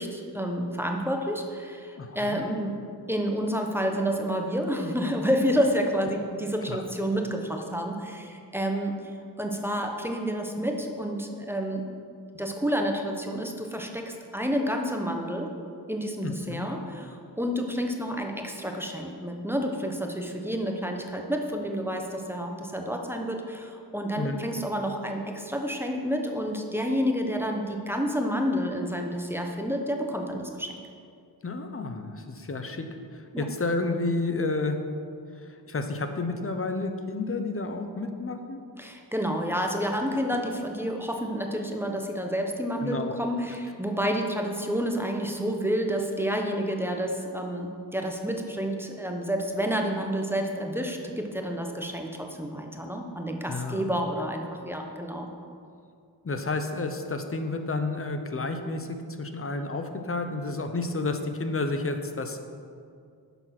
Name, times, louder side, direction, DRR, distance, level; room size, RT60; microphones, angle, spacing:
voice 1, 0.0-2.7 3.1-11.8 12.3-15.5 15.9-30.8 33.3-33.5 38.8-55.3, equal, 5° right, 2 dB, 1.0 m, -29 dB
voice 2, 2.0-2.4 6.7-6.8 16.2-16.7 24.2-24.4 31.4-32.9 33.1-34.8 35.4-38.6 42.8-43.1 53.5-53.8 56.2-58.9 59.2-62.4, left 3 dB, 35° left, 7 dB, 0.9 m, -31 dB
10.5 x 7.1 x 6.0 m, 2.3 s
wide cardioid pair, 125°, 40 cm